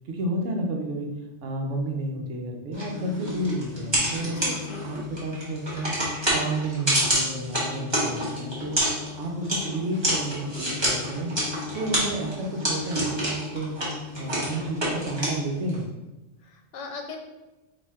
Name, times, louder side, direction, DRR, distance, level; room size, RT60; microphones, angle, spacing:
voice 1, 0.1-1.1 1.4-4.4 4.8-6.0 6.3-8.8 9.2-11.3 11.7-13.8 14.1-15.9, right 2 dB, 90° right, 2 dB, 1.1 m, -31 dB
sound 1, 2.7-15.8, equal, 25° right, 1.2 m, -29 dB
voice 2, 4.3-4.9 8.0-8.5 14.8-15.0 16.4-17.2, left 4 dB, 75° left, 4 dB, 0.9 m, -39 dB
4.3 x 2.7 x 3.5 m, 1.1 s
omnidirectional pair, 1.2 m